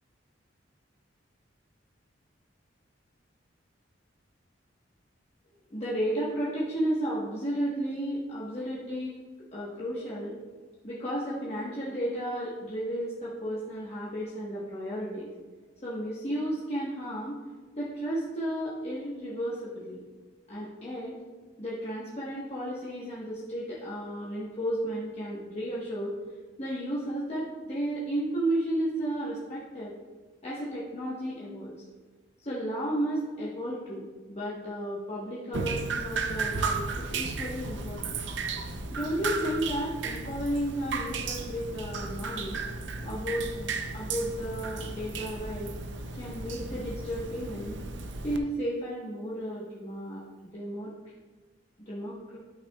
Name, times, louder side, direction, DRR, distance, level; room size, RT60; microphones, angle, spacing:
voice 1, 5.7-9.2 9.5-10.3 10.8-15.3 15.8-17.4 17.7-20.0 20.5-21.2 21.6-26.1 26.6-29.9 30.4-31.8 32.4-38.2 38.9-42.6 43.0-45.7 46.1-47.8 48.2-50.2 50.5-50.9 51.9-52.4, right 1 dB, 35° left, -7 dB, 1.2 m, -33 dB
Drip, 35.5-48.4, right 4 dB, 65° right, 0.6 m, -34 dB
11.5 x 6.0 x 2.3 m, 1.4 s
head